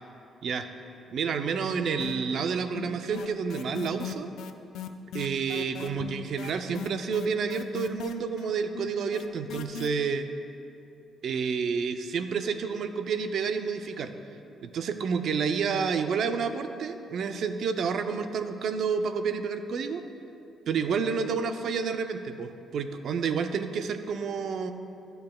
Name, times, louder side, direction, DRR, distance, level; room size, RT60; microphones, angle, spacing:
voice 1, 1.1-4.3 5.1-10.3 11.2-14.1 14.6-20.0 20.7-24.7, right 5 dB, 65° right, 8 dB, 0.4 m, -29 dB
sound 1, 2.0-2.5 2.7-9.9, left 9 dB, 80° left, 0.3 m, -38 dB
12.5 x 5.4 x 2.2 m, 2.7 s
cardioid pair, 90°, 0 cm